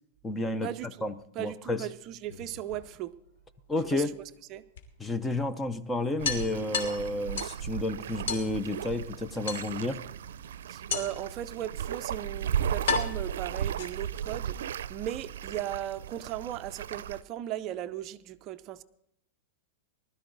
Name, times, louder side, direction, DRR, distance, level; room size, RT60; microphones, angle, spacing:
voice 1, 0.2-0.7 1.0-1.9 3.7-4.2 5.0-10.0, left 2 dB, 10° left, 12 dB, 0.6 m, -31 dB
voice 2, 1.4-3.1 3.8-4.1 4.5-4.6 10.7-18.8, right 12 dB, 35° right, 12 dB, 0.5 m, -37 dB
sound 1, 2.1-3.3 4.8-4.9 5.2-5.3 5.6-5.7 6.2-7.6 8.3-8.5 9.5-10.0 10.9-11.3 12.2-12.3 12.9-14.2, left 6 dB, 80° left, 2.7 m, -33 dB
sound 2, 6.2-17.2, right 9 dB, 85° right, 0.5 m, -36 dB
20.5 x 12.5 x 4.0 m, 0.76 s
supercardioid pair, 150°, 0 cm